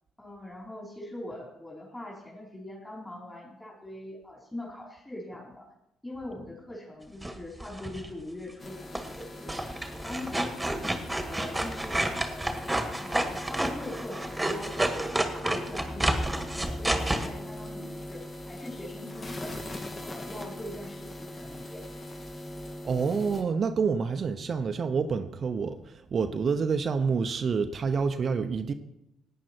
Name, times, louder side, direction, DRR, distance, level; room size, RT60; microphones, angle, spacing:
voice 1, 0.2-5.7 6.0-9.6 9.9-10.7 11.2-12.6 13.0-19.6 19.9-21.9, left 1 dB, 15° left, 3.9 m, -42 dB
sound 1, 7.2-8.1 8.9-9.2 9.5-17.3, right 1 dB, 10° right, 1.8 m, -30 dB
sound 2, 8.6-23.4, left 1 dB, 40° left, 2.3 m, -41 dB
voice 2, 22.8-28.7, right 5 dB, 50° right, 0.8 m, -28 dB
17.0 x 9.4 x 4.4 m
hypercardioid pair, 50°, 0 cm